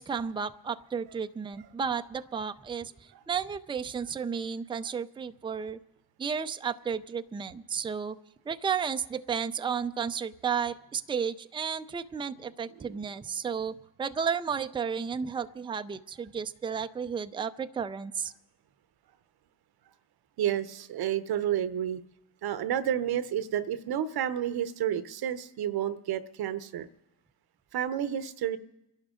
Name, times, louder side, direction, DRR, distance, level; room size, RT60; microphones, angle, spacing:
voice 1, 0.0-2.9 3.3-5.8 6.2-8.2 8.5-18.3, right 6 dB, 10° right, 9 dB, 0.5 m, -33 dB
voice 2, 20.4-22.0 22.4-26.9 27.7-28.6, right 10 dB, 50° right, 13 dB, 0.9 m, -30 dB
28.0 x 11.5 x 3.7 m, 0.95 s
supercardioid pair, 75°, 47 cm